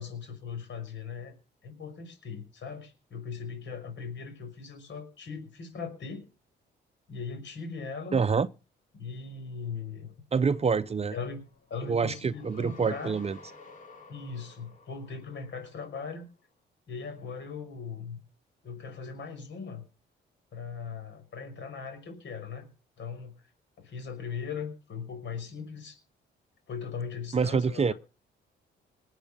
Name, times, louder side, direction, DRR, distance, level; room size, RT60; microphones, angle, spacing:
voice 1, 0.0-1.3 1.6-6.2 7.1-8.2 9.0-10.2 11.1-11.4 11.7-13.2 14.1-16.3 16.9-18.2 18.6-19.9 20.5-22.7 23.0-23.5 23.8-26.0 26.7-27.9, left 5 dB, 65° left, 5.9 m, -39 dB
voice 2, 8.1-8.5 10.3-11.1 11.9-13.4 27.3-27.9, right 5 dB, 30° right, 0.7 m, -26 dB
sound 1, 10.5-16.1, left 4 dB, 40° left, 3.8 m, -53 dB
20.0 x 8.1 x 6.9 m
cardioid pair, 90°, 20 cm